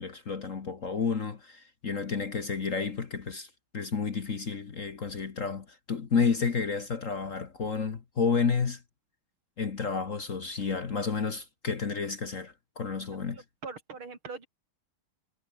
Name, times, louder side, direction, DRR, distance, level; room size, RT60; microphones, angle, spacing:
voice 1, 0.0-8.8 9.6-13.4, left 5 dB, 40° left, 1.6 m, -31 dB
voice 2, 13.1-14.5, right 4 dB, 70° right, 4.6 m, -43 dB
omnidirectional pair, 2.4 m